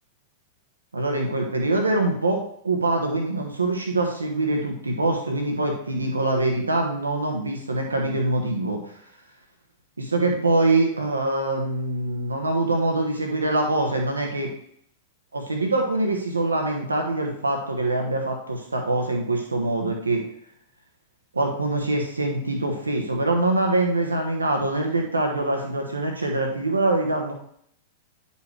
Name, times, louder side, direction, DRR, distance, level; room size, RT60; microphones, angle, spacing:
voice 1, 0.9-8.8 10.1-14.5 15.3-20.2 21.3-27.3, right 2 dB, 85° right, 2 dB, 1.2 m, -24 dB
9.3 x 5.5 x 3.3 m, 0.67 s
figure-of-eight pair, 95°, 0 cm